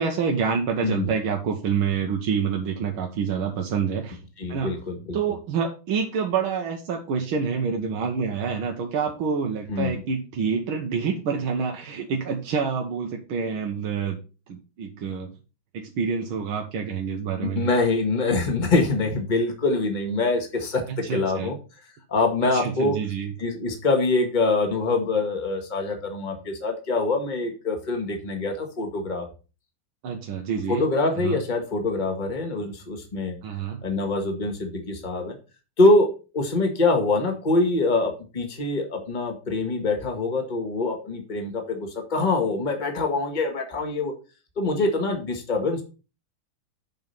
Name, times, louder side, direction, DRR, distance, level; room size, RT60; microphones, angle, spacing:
voice 1, 0.0-4.2 4.5-4.7 5.1-14.2 14.5-15.3 15.7-17.7 20.9-21.5 22.5-23.3 30.0-30.9 31.2-31.4 33.4-33.8, right 6 dB, 85° right, 2 dB, 2.0 m, -27 dB
voice 2, 4.4-5.2 9.7-10.0 17.4-21.6 22.1-23.0 23.4-29.3 30.7-33.4 33.8-35.4 35.8-44.1 44.6-45.8, left 3 dB, 25° left, 3 dB, 1.8 m, -24 dB
7.9 x 5.3 x 5.4 m, 0.32 s
omnidirectional pair, 2.2 m